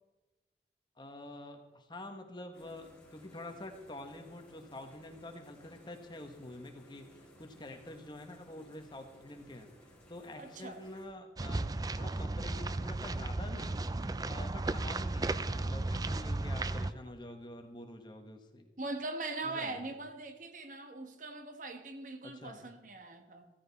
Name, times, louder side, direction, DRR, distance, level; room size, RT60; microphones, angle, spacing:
voice 1, 1.0-9.7 10.1-11.7 11.9-13.8 14.3-18.7 19.4-19.9 22.2-22.6, left 1 dB, 25° left, 5 dB, 1.4 m, -47 dB
Old filtration system spritz, 2.5-11.0, equal, 5° left, 4.4 m, -59 dB
voice 2, 10.4-10.8 16.8-16.9 18.8-23.5, right 3 dB, 45° right, 7 dB, 1.3 m, -41 dB
sound 1, 11.4-16.9, right 2 dB, 20° right, 0.4 m, -34 dB
15.5 x 14.5 x 4.2 m, 1.2 s
head